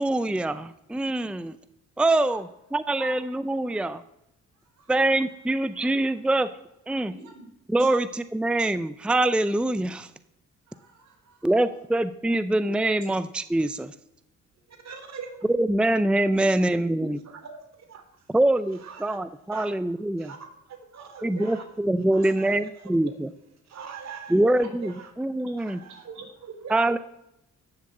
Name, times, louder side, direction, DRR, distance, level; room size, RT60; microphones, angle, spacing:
voice 1, 0.0-1.6 2.0-2.5 2.7-4.0 4.9-6.5 6.9-7.1 7.7-10.1 11.4-13.9 15.5-17.2 18.3-20.3 21.2-23.3 24.3-24.9 25.2-25.8 26.7-27.0, right 1 dB, 5° right, 13 dB, 0.6 m, -24 dB
voice 2, 7.1-7.5 7.8-7.9 10.7-11.7 14.7-14.8 20.9-21.1 26.1-26.2, right 4 dB, 80° right, 1 dB, 4.6 m, -47 dB
voice 3, 14.8-15.3 16.4-16.6 17.0-18.1 18.8-19.2 19.5-19.7 20.2-20.4 20.7-21.7 22.1-23.0 23.7-25.1 25.6-26.9, right 5 dB, 60° right, 5 dB, 2.9 m, -42 dB
16.5 x 7.0 x 7.7 m, 0.83 s
cardioid pair, 90°, 30 cm